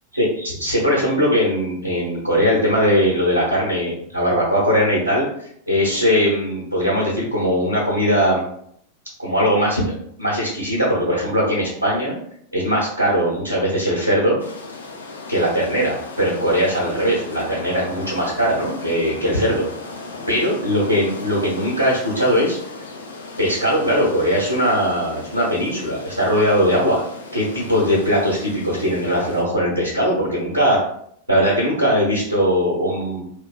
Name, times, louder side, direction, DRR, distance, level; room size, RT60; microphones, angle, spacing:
voice 1, 0.1-8.4 9.2-9.9 10.2-12.2 12.5-14.4 15.3-19.6 20.3-22.6 23.4-27.0 27.3-30.8 31.3-33.2, equal, 90° right, -7 dB, 0.7 m, -20 dB
sound 1, 14.4-29.4, left 3 dB, 70° left, 0.4 m, -37 dB
2.5 x 2.2 x 2.3 m, 0.69 s
figure-of-eight pair, 90°, 0 cm